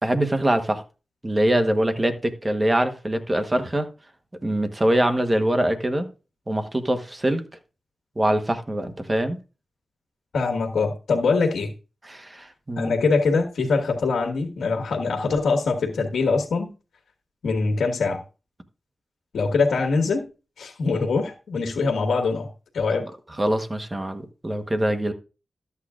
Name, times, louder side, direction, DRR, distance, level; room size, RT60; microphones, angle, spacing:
voice 1, 0.0-0.8 1.2-3.9 4.4-6.1 6.5-7.4 8.2-9.4 12.0-12.9 23.4-25.1, right 1 dB, 20° right, 1.1 m, -23 dB
voice 2, 10.3-11.7 12.8-16.7 17.4-18.2 19.3-20.2 20.6-22.5 22.7-23.1, left 4 dB, 85° left, 1.5 m, -23 dB
13.0 x 8.3 x 2.5 m
cardioid pair, 75°, 0 cm